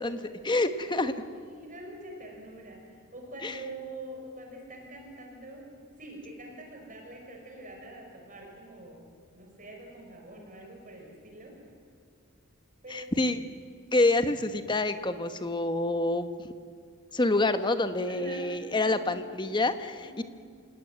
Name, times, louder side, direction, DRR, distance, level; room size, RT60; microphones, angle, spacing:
voice 1, 0.0-1.1 3.4-3.6 12.9-13.4 13.9-16.5 17.1-20.2, left 2 dB, 20° left, 10 dB, 1.1 m, -27 dB
voice 2, 0.9-5.7 6.0-11.6 12.8-13.3 18.1-18.5 18.8-19.1 20.0-20.2, right 1 dB, 35° right, 1 dB, 5.3 m, -45 dB
26.5 x 18.0 x 9.6 m, 2.1 s
head